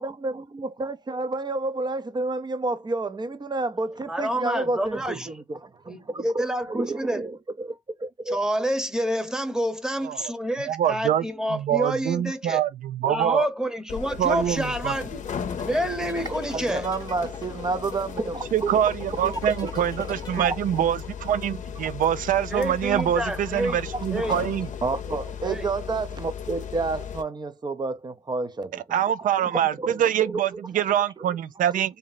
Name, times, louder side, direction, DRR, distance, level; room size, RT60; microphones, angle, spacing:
voice 1, 0.0-8.4 16.2-18.8 19.2-19.7 20.4-20.6 23.7-23.8 24.8-28.8 29.2-29.3 29.8-30.6, right 3 dB, 35° right, 0.6 m, -30 dB
voice 2, 4.1-5.3 5.9-7.2 8.3-12.6 13.0-15.2 15.6-16.9 22.5-23.8 24.1-24.3 25.4-25.7, right 1 dB, 5° right, 0.9 m, -28 dB
voice 3, 10.6-13.5 14.2-14.9 18.5-24.7 28.7-32.0, right 10 dB, 90° right, 0.4 m, -25 dB
sound 1, 13.9-27.2, left 8 dB, 70° left, 0.6 m, -36 dB
sound 2, 15.2-21.1, left 4 dB, 30° left, 0.8 m, -44 dB
3.1 x 2.7 x 4.0 m
cardioid pair, 70°, 13 cm